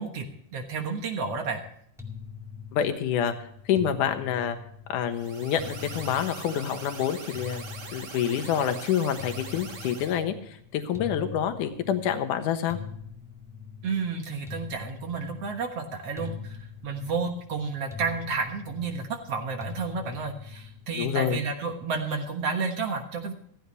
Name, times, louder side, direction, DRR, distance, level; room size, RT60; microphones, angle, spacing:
voice 1, 0.0-1.6 13.8-23.3, right 4 dB, 55° right, 4 dB, 2.0 m, -31 dB
sound 1, 2.0-21.3, left 6 dB, ahead, 1.2 m, -43 dB
voice 2, 2.7-3.3 3.7-4.6 4.9-7.6 7.9-12.8 21.0-21.4, left 9 dB, 70° left, 7 dB, 2.7 m, -27 dB
sound 2, 5.1-10.2, right 4 dB, 40° right, 1.7 m, -42 dB
15.5 x 15.5 x 3.2 m, 0.68 s
omnidirectional pair, 4.0 m